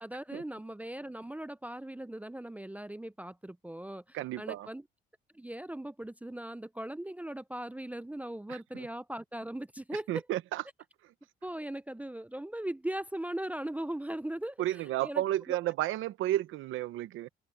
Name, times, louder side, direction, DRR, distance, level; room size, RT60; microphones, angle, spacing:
voice 1, 0.0-4.8 5.3-10.2 11.4-15.6, right 1 dB, 5° right, 0.5 m, -39 dB
voice 2, 4.1-4.7 8.5-8.9 10.1-10.6 14.6-17.3, right 14 dB, 85° right, 0.9 m, -32 dB
open air
cardioid pair, 90°, 20 cm